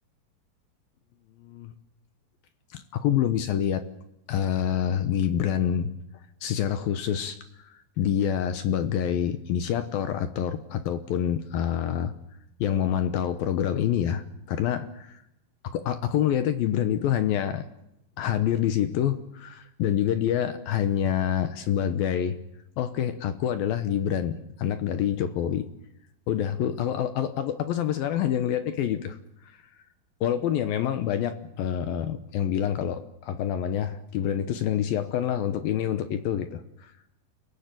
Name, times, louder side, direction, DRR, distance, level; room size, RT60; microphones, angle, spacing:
voice 1, 1.4-1.7 2.7-3.8 4.3-5.9 6.4-7.4 7.6-12.1 12.6-15.2 15.6-17.6 18.2-22.4 22.8-25.7 26.3-29.2 30.2-36.9, left 10 dB, 70° left, 10 dB, 2.6 m, -27 dB
30.0 x 15.0 x 9.3 m, 0.82 s
omnidirectional pair, 4.8 m